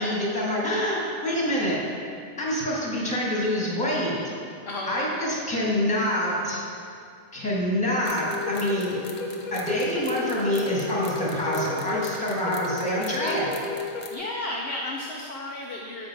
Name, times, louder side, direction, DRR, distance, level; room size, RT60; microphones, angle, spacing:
voice 1, 0.0-1.8 2.4-4.1 4.9-6.6 7.3-9.0 9.5-13.5, equal, 5° left, -6 dB, 1.5 m, -26 dB
voice 2, 4.6-5.4 13.9-16.1, left 1 dB, 55° left, -1 dB, 0.7 m, -33 dB
sound 1, 8.0-14.2, left 3 dB, 80° left, 1.2 m, -33 dB
7.7 x 5.2 x 4.8 m, 2.3 s
omnidirectional pair, 1.5 m